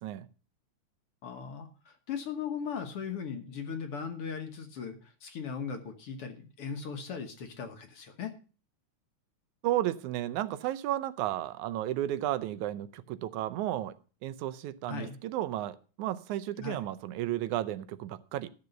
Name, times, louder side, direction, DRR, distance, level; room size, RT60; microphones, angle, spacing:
voice 1, 1.2-8.3 14.9-15.2 16.6-16.8, left 6 dB, 60° left, 6 dB, 1.9 m, -38 dB
voice 2, 9.6-13.9 14.2-18.5, right 13 dB, 85° right, 13 dB, 2.1 m, -33 dB
12.0 x 7.0 x 6.6 m, 0.37 s
omnidirectional pair, 3.4 m